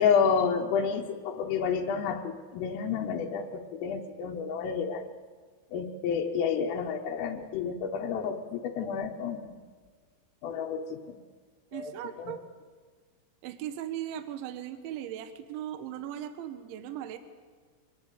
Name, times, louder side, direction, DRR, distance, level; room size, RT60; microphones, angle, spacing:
voice 1, 0.0-5.0 5.7-9.6 10.4-11.2 11.7-11.9 12.2-12.4, left 6 dB, 80° left, 0 dB, 3.7 m, -30 dB
voice 2, 11.7-12.4 13.4-17.2, right 11 dB, 70° right, 8 dB, 3.3 m, -38 dB
23.0 x 19.5 x 8.4 m, 1.5 s
omnidirectional pair, 5.8 m